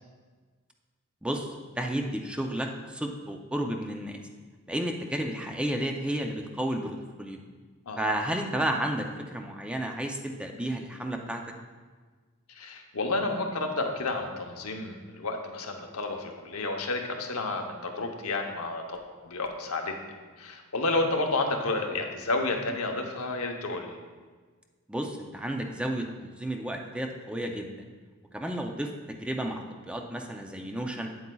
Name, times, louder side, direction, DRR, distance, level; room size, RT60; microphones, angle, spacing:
voice 1, 1.2-4.2 4.7-7.4 8.0-11.4 24.9-27.9 28.3-31.1, right 1 dB, 5° right, 2 dB, 0.4 m, -32 dB
voice 2, 12.6-19.9 20.4-24.0, left 2 dB, 85° left, 3 dB, 0.8 m, -31 dB
8.5 x 7.9 x 2.3 m, 1.4 s
head